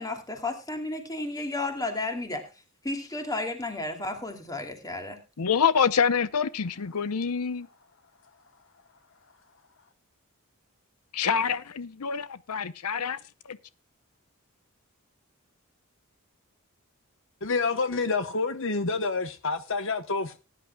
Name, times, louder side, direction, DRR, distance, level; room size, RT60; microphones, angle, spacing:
voice 1, 0.0-2.5 2.8-5.2, left 2 dB, 15° left, 2.5 m, -33 dB
voice 2, 5.4-7.7 11.1-13.2 13.5-13.6, left 6 dB, 85° left, 0.7 m, -26 dB
voice 3, 17.4-20.4, left 4 dB, 60° left, 1.0 m, -28 dB
19.0 x 10.5 x 2.3 m
head